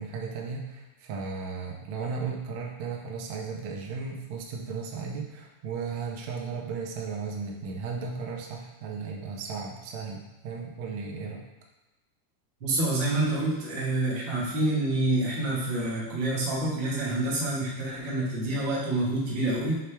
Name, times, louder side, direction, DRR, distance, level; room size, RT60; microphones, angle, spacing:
voice 1, 0.0-11.4, right 5 dB, 70° right, -1 dB, 1.7 m, -35 dB
voice 2, 12.6-19.8, right 2 dB, 45° right, -6 dB, 1.7 m, -27 dB
6.5 x 4.7 x 3.4 m, 1.1 s
omnidirectional pair, 4.1 m